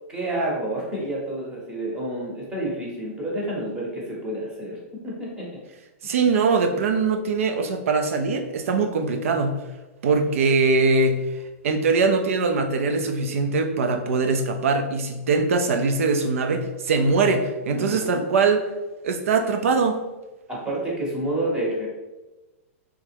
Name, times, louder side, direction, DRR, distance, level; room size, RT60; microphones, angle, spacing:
voice 1, 0.1-5.6 17.7-18.3 20.5-21.9, right 1 dB, 10° right, -4 dB, 0.9 m, -29 dB
voice 2, 6.0-9.6 10.0-11.2 11.6-18.7 19.0-20.0, right 4 dB, 75° right, 6 dB, 0.5 m, -22 dB
3.5 x 3.2 x 3.4 m, 1.1 s
supercardioid pair, 175°, 7 cm